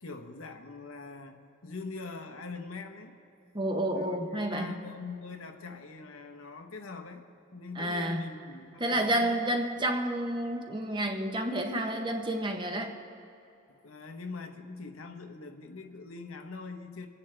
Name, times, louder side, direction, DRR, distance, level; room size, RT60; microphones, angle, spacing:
voice 1, 0.0-3.2 3.9-7.2 7.5-9.4 9.7-9.9 13.8-17.1, left 4 dB, 75° left, 5 dB, 1.0 m, -43 dB
voice 2, 3.5-4.7 7.8-8.2 8.8-12.9, right 1 dB, 20° right, 4 dB, 0.9 m, -30 dB
24.0 x 9.8 x 3.3 m, 2.8 s
head